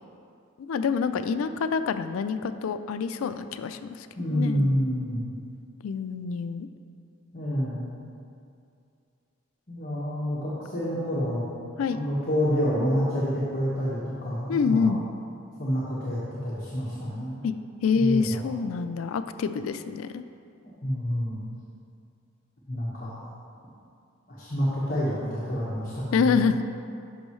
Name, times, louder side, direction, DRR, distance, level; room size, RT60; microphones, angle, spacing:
voice 1, 0.6-4.1 4.3-4.8 5.8-6.7 11.8-12.0 14.5-15.0 17.4-17.5 17.8-20.2 26.1-26.6, left 5 dB, 85° left, 11 dB, 0.4 m, -26 dB
voice 2, 4.2-5.3 7.3-7.8 9.7-11.4 11.9-14.9 15.6-17.4 17.9-18.4 20.6-21.4 22.7-23.2 24.3-26.5, equal, 45° left, -9 dB, 1.4 m, -28 dB
11.5 x 5.4 x 3.1 m, 2.4 s
head